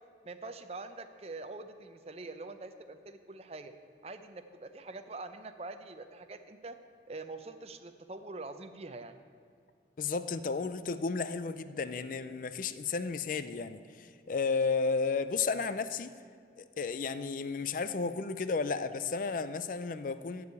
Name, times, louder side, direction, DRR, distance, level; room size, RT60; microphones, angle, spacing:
voice 1, 0.2-3.7 4.0-6.7 7.1-9.1, right 3 dB, 35° right, 9 dB, 0.6 m, -44 dB
voice 2, 10.0-16.1 16.6-20.5, left 4 dB, 45° left, 12 dB, 0.4 m, -33 dB
13.5 x 4.8 x 8.3 m, 2.2 s
head